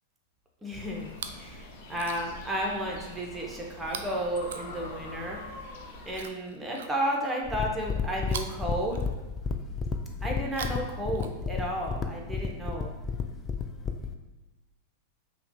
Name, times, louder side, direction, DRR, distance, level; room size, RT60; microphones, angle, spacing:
voice 1, 0.6-1.6 1.9-5.4 6.1-9.0 10.2-12.9, right 1 dB, 10° right, -1 dB, 0.8 m, -32 dB
sound 1, 0.8-6.3, left 2 dB, 55° left, 0.7 m, -44 dB
Chewing mastication, 1.0-1.5 1.9-2.5 3.8-5.2 6.1-7.4 8.2-9.5 10.4-11.8 12.7-12.8, right 7 dB, 70° right, 0.3 m, -43 dB
sound 2, 7.4-14.1, left 5 dB, 25° left, 0.4 m, -32 dB
5.5 x 2.3 x 2.7 m, 1.1 s
hypercardioid pair, 105°, 0 cm